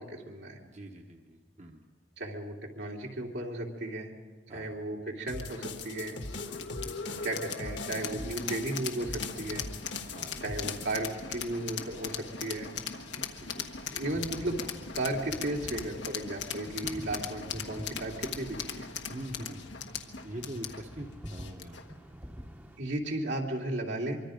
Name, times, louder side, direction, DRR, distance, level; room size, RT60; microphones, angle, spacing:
voice 1, 0.0-0.6 2.2-4.1 4.5-6.2 7.2-9.7 10.4-12.7 13.9-18.9 22.8-24.2, right 1 dB, 75° right, 0 dB, 2.9 m, -35 dB
voice 2, 0.6-1.8 4.5-4.8 6.6-7.3 10.1-10.4 13.1-13.7 19.1-19.7 20.2-21.8, right 1 dB, 40° right, 2 dB, 1.2 m, -44 dB
sound 1, 5.3-10.9, left 3 dB, 70° left, 1.8 m, -41 dB
sound 2, 5.4-21.9, left 6 dB, 85° left, 1.4 m, -40 dB
sound 3, 13.8-22.8, equal, 10° right, 1.0 m, -47 dB
25.5 x 23.5 x 5.2 m, 1.3 s
head